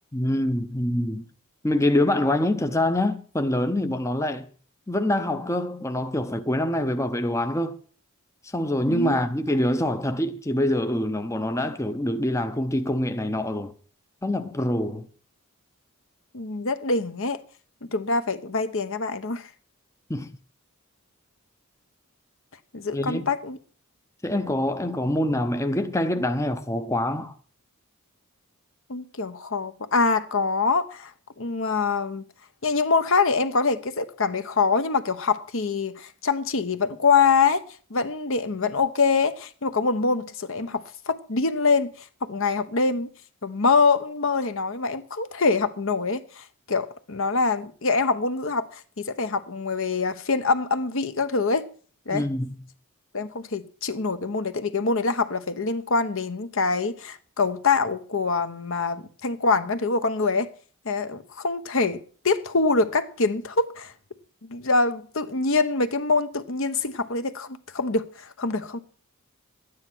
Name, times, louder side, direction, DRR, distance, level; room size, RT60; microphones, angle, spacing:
voice 1, 0.1-1.3 1.6-4.5 4.9-7.8 8.5-13.7 14.2-15.1 20.1-20.3 22.9-23.3 24.2-27.3 52.1-52.6, left 1 dB, 15° left, 0.6 m, -25 dB
voice 2, 16.3-17.4 17.9-19.5 22.7-23.6 28.9-31.1 31.4-32.2 32.6-37.6 37.9-41.9 42.2-43.1 43.4-51.7 52.1-52.2 53.1-60.5 60.8-63.9 64.5-68.8, left 4 dB, 60° left, 1.0 m, -24 dB
12.0 x 9.7 x 6.1 m
head